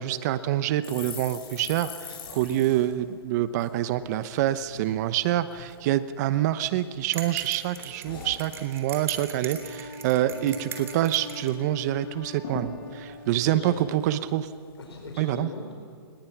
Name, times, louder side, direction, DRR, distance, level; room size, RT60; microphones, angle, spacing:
voice 1, 0.0-14.5 15.2-15.5, right 13 dB, 40° right, 13 dB, 0.9 m, -26 dB
sound 1, 0.8-4.4 4.7-4.9 5.2-5.8 6.3-7.1 7.4-9.1 9.4-9.6 9.9-10.5 10.8-10.9 11.2-11.9 12.1-12.2 12.4-14.3 14.8-15.1, left 5 dB, 55° left, 7.6 m, -43 dB
sound 2, 7.1-11.5, right 8 dB, 20° right, 3.2 m, -39 dB
Wind instrument woodwind instrument, 9.5-13.8, left 3 dB, 30° left, 4.8 m, -42 dB
voice 2, 9.9-10.5 13.4-13.9 14.8-15.7, left 3 dB, 85° left, 0 dB, 4.5 m, -40 dB
29.5 x 19.5 x 6.0 m, 2.4 s
hypercardioid pair, 135°, 13 cm